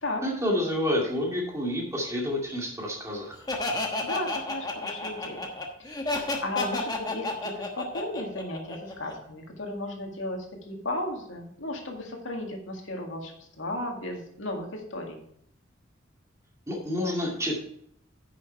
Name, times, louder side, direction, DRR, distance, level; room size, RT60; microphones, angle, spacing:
voice 1, 0.2-3.3 16.7-17.6, left 1 dB, 15° right, -2 dB, 2.3 m, -29 dB
Laughter, 3.5-9.1, left 2 dB, 20° left, 1.2 m, -31 dB
voice 2, 4.0-5.5 6.4-15.2, left 1 dB, 85° left, 2 dB, 1.9 m, -35 dB
10.0 x 6.3 x 4.5 m, 0.69 s
head